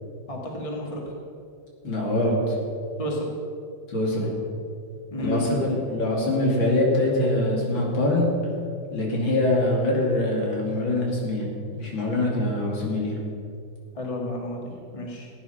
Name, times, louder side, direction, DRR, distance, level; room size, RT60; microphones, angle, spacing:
voice 1, 0.3-1.0 3.0-3.3 5.1-5.7 14.0-15.3, equal, 15° left, -1 dB, 2.0 m, -31 dB
voice 2, 1.8-2.6 3.9-4.3 5.2-8.3 8.9-11.5 11.7-13.1, left 1 dB, 75° left, -2 dB, 3.5 m, -24 dB
17.0 x 9.5 x 5.8 m, 2.4 s
omnidirectional pair, 2.1 m